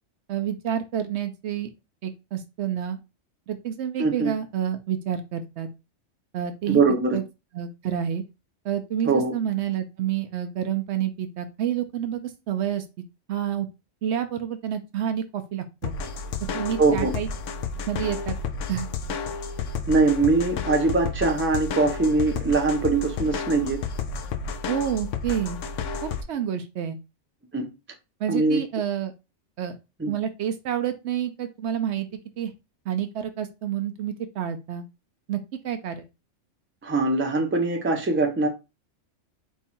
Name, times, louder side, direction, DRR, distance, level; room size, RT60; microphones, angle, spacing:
voice 1, 0.3-1.7 2.0-3.0 3.5-5.7 6.3-6.8 7.1-7.2 7.5-8.2 8.6-12.8 13.3-13.7 14.0-15.9 16.5-17.3 17.9-18.4 18.7-18.9 24.7-25.6 26.0-27.0 28.2-29.1 29.6-29.8 30.1-32.1 32.4-32.5 32.9-34.9 35.3-36.0, right 9 dB, 70° right, 0.8 m, -28 dB
voice 2, 4.0-4.3 6.7-7.2 9.1-9.3 16.8-17.1 19.9-23.8 27.5-27.7 28.3-28.6 30.0-30.1 36.8-38.5, right 3 dB, 15° right, 0.6 m, -22 dB
sound 1, 15.8-26.2, left 5 dB, 80° left, 1.0 m, -31 dB
4.5 x 2.3 x 4.2 m
omnidirectional pair, 1.3 m